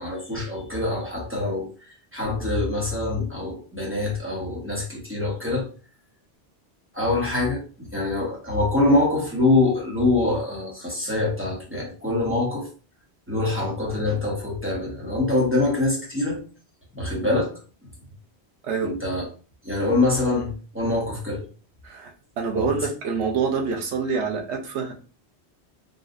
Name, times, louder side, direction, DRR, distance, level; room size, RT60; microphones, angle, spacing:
voice 1, 0.0-5.6 6.9-12.7 13.3-16.4 16.9-17.5 18.8-19.3 19.6-21.5 22.6-22.8, left 2 dB, 10° right, -3 dB, 0.9 m, -24 dB
voice 2, 22.4-24.9, right 5 dB, 85° right, 3 dB, 1.0 m, -26 dB
3.9 x 2.3 x 2.5 m, 0.37 s
omnidirectional pair, 1.1 m